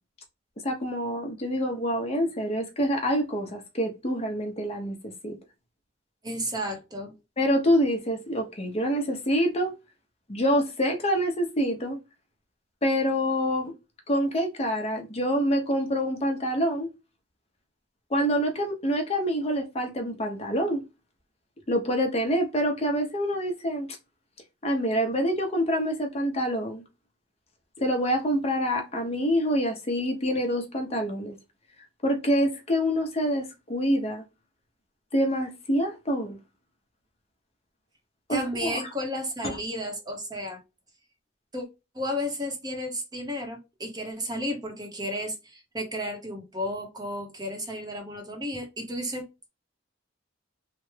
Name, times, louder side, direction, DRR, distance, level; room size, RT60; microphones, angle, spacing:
voice 1, 0.6-5.4 7.4-9.7 10.3-12.0 12.8-13.7 14.1-16.9 18.1-20.8 21.7-23.9 24.6-26.8 27.8-31.4 32.0-34.2 35.1-36.4 38.3-38.8 39.4-39.6, equal, 30° left, 0.7 m, -26 dB
voice 2, 6.2-7.1 38.3-40.6 41.5-41.7 41.9-49.5, equal, 20° right, 0.7 m, -33 dB
3.3 x 2.0 x 3.1 m
head